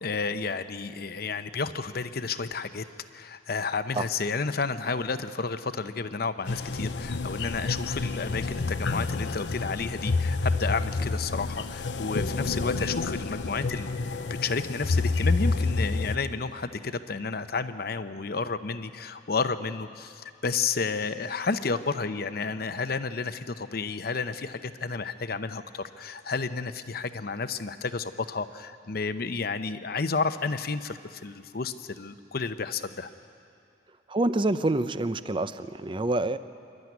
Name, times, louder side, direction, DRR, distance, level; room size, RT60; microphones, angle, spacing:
voice 1, 0.0-2.8 3.1-13.9 14.4-33.1, left 4 dB, 60° left, 11 dB, 0.8 m, -31 dB
sound 1, 6.5-16.2, left 3 dB, 90° left, 0.8 m, -29 dB
voice 2, 34.1-36.4, right 2 dB, 30° right, 13 dB, 0.6 m, -27 dB
26.0 x 12.0 x 9.5 m, 2.5 s
head